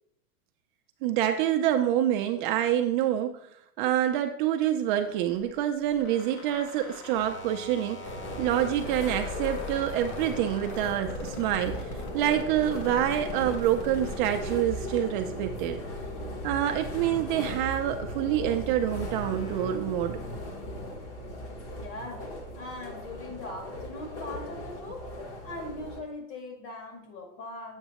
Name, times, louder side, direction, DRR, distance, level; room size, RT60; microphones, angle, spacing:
voice 1, 1.0-3.4 3.8-8.0 8.4-11.8 12.1-15.8 16.4-20.2, right 11 dB, 40° right, 5 dB, 0.4 m, -27 dB
sound 1, 4.9-15.6 15.9-19.7, left 1 dB, 90° left, 1.6 m, -42 dB
sound 2, 8.0-26.0, left 1 dB, 35° left, 1.0 m, -38 dB
voice 2, 21.8-25.1 25.4-27.8, left 2 dB, 55° left, 2 dB, 2.2 m, -40 dB
8.0 x 5.3 x 2.9 m, 0.77 s
supercardioid pair, 140°, 42 cm